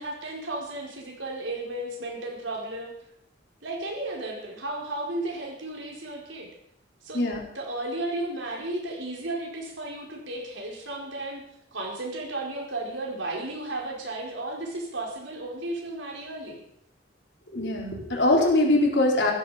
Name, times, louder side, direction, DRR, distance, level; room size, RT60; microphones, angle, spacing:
voice 1, 0.0-2.9 3.6-6.5 7.0-7.3 7.5-11.4 11.7-16.6, right 2 dB, 85° right, -1 dB, 4.7 m, -34 dB
voice 2, 17.5-19.3, left 2 dB, 65° left, -1 dB, 4.1 m, -22 dB
15.5 x 14.5 x 5.1 m, 0.75 s
head